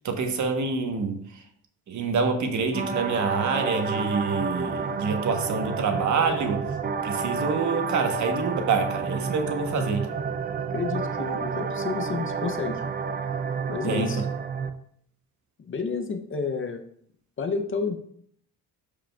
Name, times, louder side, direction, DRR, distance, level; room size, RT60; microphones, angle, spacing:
voice 1, 0.0-1.4 1.9-6.6 7.0-10.1 13.8-14.1, right 4 dB, 50° right, 5 dB, 1.1 m, -26 dB
sound 1, 2.7-14.7, right 5 dB, 25° right, 0.3 m, -30 dB
voice 2, 10.7-12.8 13.7-14.3 15.6-16.8 17.4-17.9, left 5 dB, 35° left, 6 dB, 0.6 m, -30 dB
12.5 x 5.1 x 2.3 m, 0.65 s
cardioid pair, 145°, 37 cm